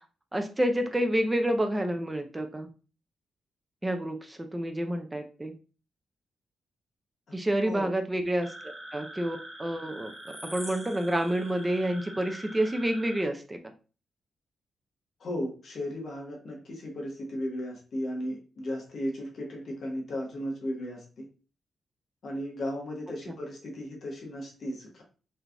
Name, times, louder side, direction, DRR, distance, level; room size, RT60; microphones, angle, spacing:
voice 1, 0.3-2.7 3.8-5.5 7.3-10.1 10.5-13.6, right 1 dB, 10° right, 6 dB, 0.3 m, -29 dB
sound 1, 8.4-13.2, right 1 dB, 5° left, 1.6 m, -44 dB
voice 2, 15.2-21.3 22.2-25.0, equal, 45° left, 0 dB, 1.0 m, -35 dB
3.3 x 3.2 x 2.4 m, 0.35 s
wide cardioid pair, 175°, 0 cm